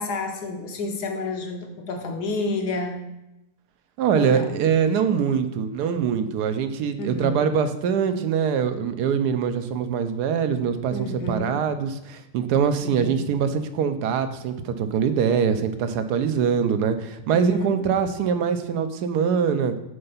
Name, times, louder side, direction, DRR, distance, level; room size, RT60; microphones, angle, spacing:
voice 1, 0.0-3.0 4.1-4.6 7.0-7.5 10.9-11.6 12.8-13.3 17.3-17.8, left 2 dB, 65° left, 4 dB, 1.5 m, -30 dB
voice 2, 4.0-10.9 11.3-19.7, right 7 dB, 70° right, 9 dB, 1.1 m, -23 dB
6.6 x 4.4 x 5.6 m, 0.92 s
omnidirectional pair, 1.9 m